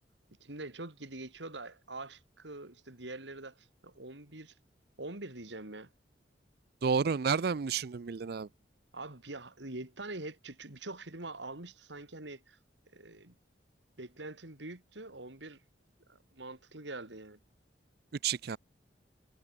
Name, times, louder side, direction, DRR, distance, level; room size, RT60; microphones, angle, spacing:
voice 1, 0.4-4.5 5.0-5.9 8.9-12.6 12.9-13.4 14.0-15.6 16.1-17.4, right 2 dB, 75° right, 3.3 m, -44 dB
voice 2, 6.8-8.5 18.2-18.6, right 6 dB, 60° right, 0.5 m, -30 dB
head